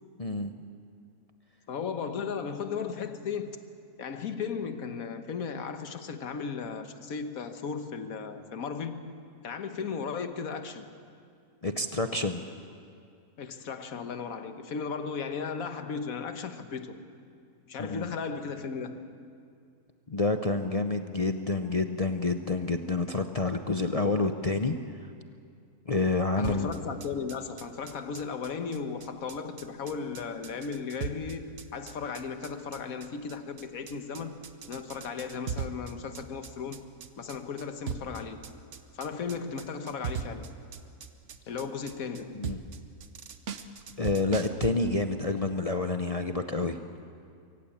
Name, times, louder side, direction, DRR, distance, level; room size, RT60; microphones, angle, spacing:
voice 1, 0.2-0.5 11.6-12.4 17.8-18.1 20.1-24.8 25.9-26.7 42.3-42.6 44.0-46.8, left 3 dB, 40° left, 6 dB, 0.5 m, -28 dB
voice 2, 1.7-3.6 4.0-9.1 9.4-10.9 13.4-17.0 17.7-19.1 26.3-36.9 37.2-38.4 38.9-40.5 41.5-42.4, left 5 dB, 65° left, 8 dB, 1.6 m, -36 dB
sound 1, 26.4-44.7, right 6 dB, 55° right, 1.1 m, -39 dB
24.0 x 15.5 x 8.7 m, 2.3 s
omnidirectional pair, 1.6 m